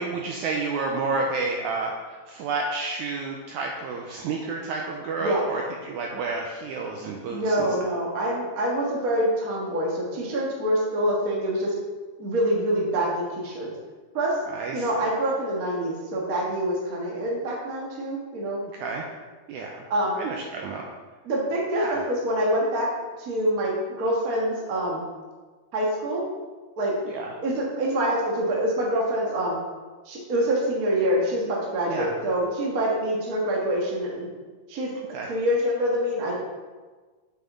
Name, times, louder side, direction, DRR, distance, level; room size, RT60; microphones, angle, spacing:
voice 1, 0.0-7.7 14.5-14.9 18.7-19.0 19.5-19.8 20.1-20.9 21.7-22.0 27.1-27.3 31.9-32.2 35.1-35.3, right 3 dB, 85° right, 1 dB, 1.7 m, -30 dB
voice 2, 7.3-11.7 12.2-13.7 14.1-14.3 14.7-18.6 19.9-20.1 21.2-22.9 23.2-23.7 24.0-25.0 25.7-26.2 26.8-26.9 27.4-29.6 30.0-34.3 34.7-34.9 35.3-36.3, right 1 dB, 70° right, -3 dB, 0.8 m, -25 dB
6.7 x 6.3 x 3.6 m, 1.3 s
omnidirectional pair, 4.0 m